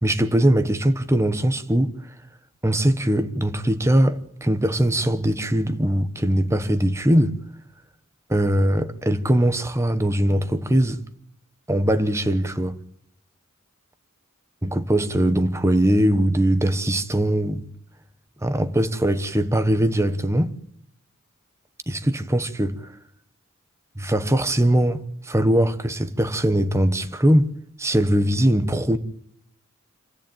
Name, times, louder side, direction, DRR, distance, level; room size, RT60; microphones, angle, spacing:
voice 1, 0.0-1.9 2.6-7.3 8.3-11.0 11.7-12.8 14.8-17.7 18.4-20.5 21.9-22.9 24.0-27.5 27.8-29.0, right 1 dB, 15° right, 1.2 m, -21 dB
27.5 x 14.0 x 9.1 m
head